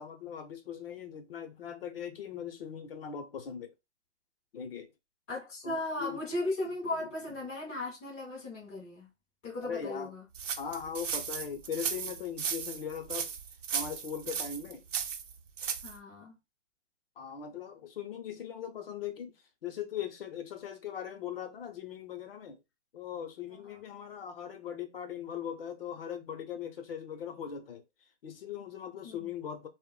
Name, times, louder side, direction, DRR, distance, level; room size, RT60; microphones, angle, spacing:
voice 1, 0.0-3.7 4.5-4.9 5.6-6.2 7.0-7.1 9.6-10.1 10.6-13.3 13.7-14.8 17.2-19.3 19.6-22.6 22.9-27.8 28.2-29.7, left 8 dB, 55° left, 0.6 m, -40 dB
voice 2, 5.3-9.1 9.4-10.2 15.8-16.3 23.6-23.8 29.0-29.3, left 2 dB, 10° left, 0.4 m, -37 dB
sound 1, 10.3-16.0, right 7 dB, 90° right, 0.6 m, -36 dB
2.1 x 2.1 x 3.7 m
hypercardioid pair, 155°, 36 cm